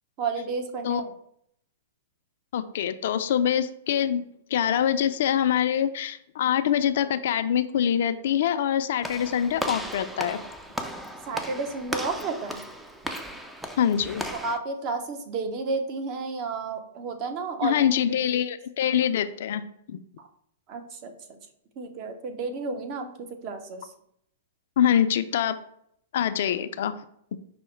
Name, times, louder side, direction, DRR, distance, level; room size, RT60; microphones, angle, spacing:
voice 1, 0.2-1.2 11.2-12.6 14.3-17.9 18.3-18.4 20.2-20.3 20.7-21.4 21.8-23.9, right 4 dB, 40° right, 5 dB, 0.7 m, -32 dB
voice 2, 2.5-4.3 4.5-10.4 13.8-14.2 17.6-20.0 24.8-25.5 26.1-27.0, left 9 dB, 65° left, 10 dB, 0.4 m, -24 dB
Walk footsteps / Slam, 9.0-14.6, equal, 5° right, 0.4 m, -35 dB
5.5 x 2.1 x 4.4 m, 0.71 s
hypercardioid pair, 125°, 0 cm